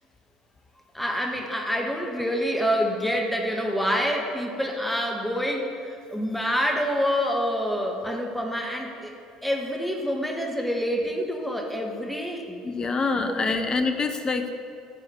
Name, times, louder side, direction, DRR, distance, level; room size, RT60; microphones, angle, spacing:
voice 1, 0.9-9.1 9.4-12.6 13.2-13.5, equal, 5° left, 1 dB, 1.6 m, -27 dB
voice 2, 12.6-14.5, left 4 dB, 30° left, 7 dB, 0.9 m, -26 dB
11.5 x 4.9 x 8.1 m, 2.6 s
figure-of-eight pair, 60°, 2 cm